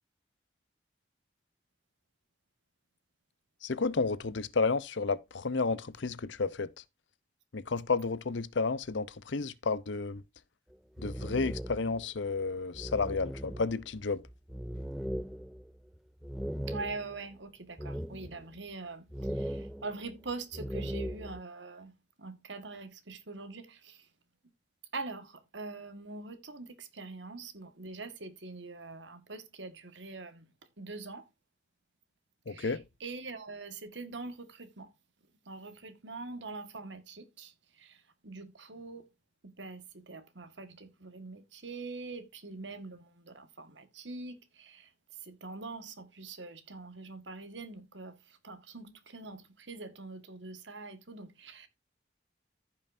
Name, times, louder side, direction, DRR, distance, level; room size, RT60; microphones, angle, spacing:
voice 1, 3.6-6.7 7.5-10.2 11.0-14.2 32.5-32.8, left 4 dB, 85° left, 0.7 m, -31 dB
sound 1, 10.7-12.1 12.4-12.5 12.7-17.3 17.8-18.6 19.1-21.4, equal, ahead, 0.4 m, -39 dB
voice 2, 16.7-21.9 22.2-24.1 24.9-30.5 30.8-31.3 32.5-34.9 35.4-39.1 39.4-51.7, right 3 dB, 85° right, 1.7 m, -44 dB
15.0 x 5.6 x 2.6 m
head